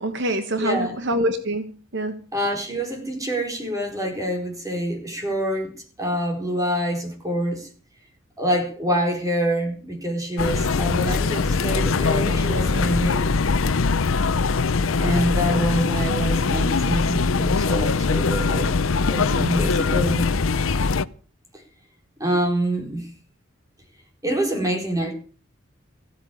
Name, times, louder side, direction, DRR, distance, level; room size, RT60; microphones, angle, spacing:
voice 1, 0.0-2.2, right 1 dB, 60° right, 1.4 m, -25 dB
voice 2, 0.6-1.0 2.3-7.7 8.4-13.3 15.0-18.8 19.1-20.3 22.2-23.1 24.2-25.1, right 1 dB, 15° right, 4.6 m, -26 dB
sound 1, 10.4-21.0, left 4 dB, 80° left, 0.7 m, -22 dB
16.0 x 8.5 x 8.6 m
head